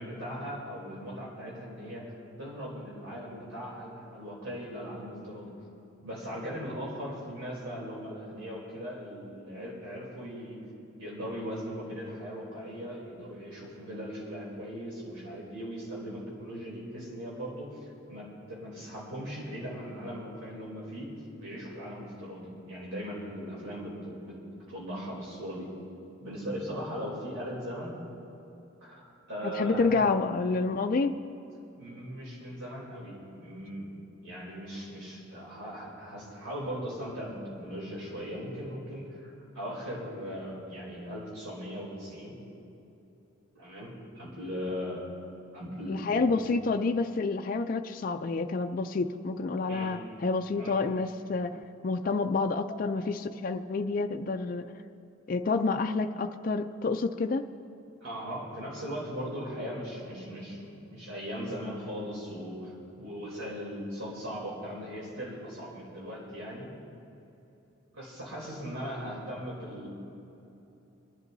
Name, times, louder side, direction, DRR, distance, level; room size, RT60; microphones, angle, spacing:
voice 1, 0.0-5.5 6.0-10.6 11.0-21.1 21.4-24.4 24.7-25.7 26.2-28.0 28.8-30.0 31.8-33.9 34.2-42.3 43.5-45.3 45.5-46.4 49.7-49.9 50.6-50.8 52.5-52.9 58.0-66.7 67.9-69.9, equal, 85° right, -5 dB, 3.2 m, -39 dB
voice 2, 29.6-31.2 45.9-54.7 55.3-57.4, left 3 dB, 40° left, 5 dB, 0.4 m, -29 dB
27.0 x 11.0 x 2.7 m, 2.8 s
head